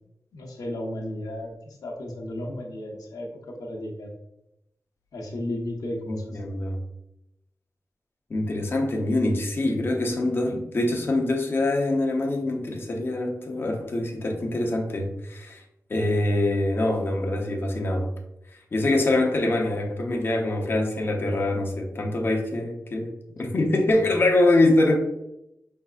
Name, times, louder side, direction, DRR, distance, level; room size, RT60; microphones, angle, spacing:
voice 1, 0.3-4.1 5.1-6.7, left 1 dB, 85° left, 1.0 m, -34 dB
voice 2, 6.1-6.8 8.3-15.6 15.9-18.1 18.7-25.0, left 2 dB, 35° left, 0.7 m, -24 dB
5.5 x 3.5 x 2.4 m
wide cardioid pair, 175°, 6 cm